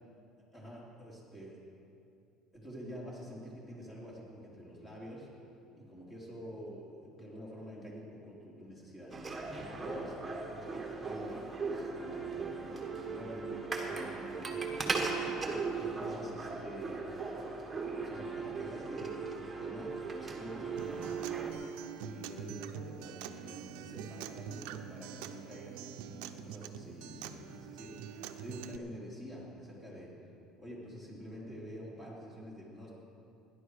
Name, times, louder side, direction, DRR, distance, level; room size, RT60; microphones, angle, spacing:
voice 1, 0.5-1.6 2.5-5.3 5.8-13.5 13.9-15.0 15.3-17.1 17.6-21.5 22.0-30.2 30.6-32.9, equal, 20° left, -4 dB, 3.6 m, -47 dB
sound 1, 9.1-21.5, right 4 dB, 15° right, 1.4 m, -38 dB
Acoustic guitar, 20.8-28.8, right 9 dB, 80° right, 0.7 m, -45 dB
17.5 x 11.0 x 4.9 m, 2.6 s
cardioid pair, 140°, 0 cm